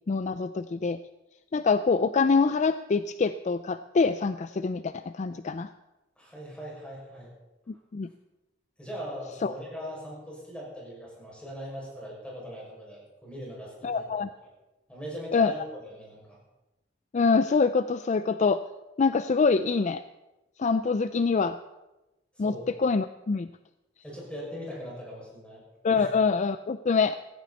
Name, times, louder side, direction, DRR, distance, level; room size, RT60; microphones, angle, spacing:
voice 1, 0.1-1.0 1.5-5.7 7.7-8.1 9.4-9.5 13.8-14.3 15.3-15.5 17.1-18.6 19.0-20.0 20.6-21.6 22.4-23.5 25.8-27.2, left 4 dB, 40° left, 12 dB, 0.4 m, -25 dB
voice 2, 6.2-7.3 8.8-14.1 14.4-14.5 14.9-16.4 22.3-22.6 24.0-25.6 25.9-26.1, equal, 5° left, -4 dB, 6.2 m, -40 dB
16.0 x 15.5 x 4.2 m, 1.0 s
head